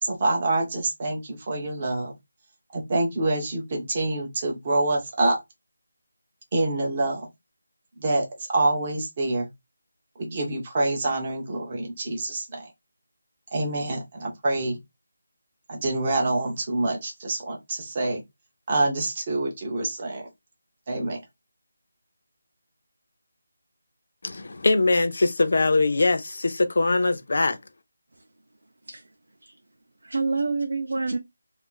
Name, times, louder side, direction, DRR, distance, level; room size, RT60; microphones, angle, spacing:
voice 1, 0.0-2.2 2.7-5.4 6.5-7.3 8.0-9.5 10.2-12.7 13.5-14.8 15.7-18.2 18.7-20.3 20.9-21.2, right 2 dB, 20° right, 0.5 m, -26 dB
voice 2, 24.2-27.6, left 3 dB, 45° left, 0.4 m, -22 dB
voice 3, 30.0-31.2, right 3 dB, 65° right, 0.5 m, -27 dB
2.4 x 2.4 x 3.7 m
figure-of-eight pair, 180°, 0 cm